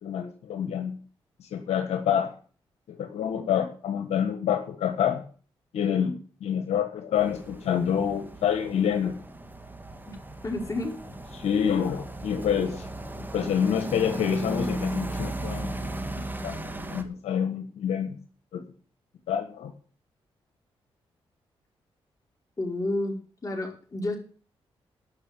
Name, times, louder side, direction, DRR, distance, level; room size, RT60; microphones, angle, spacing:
voice 1, 0.0-1.0 1.4-2.3 2.9-5.2 5.7-9.2 11.3-12.9 13.3-16.6 16.9-18.2 18.5-18.6 19.3-19.7, left 8 dB, 85° left, 6 dB, 1.4 m, -27 dB
sound 1, 7.2-17.0, right 1 dB, 20° right, 2.1 m, -36 dB
voice 2, 10.4-11.0 22.6-23.2 23.4-24.2, left 2 dB, 30° left, 0 dB, 5.4 m, -30 dB
12.0 x 6.3 x 9.0 m, 0.42 s
cardioid pair, 60°, 11 cm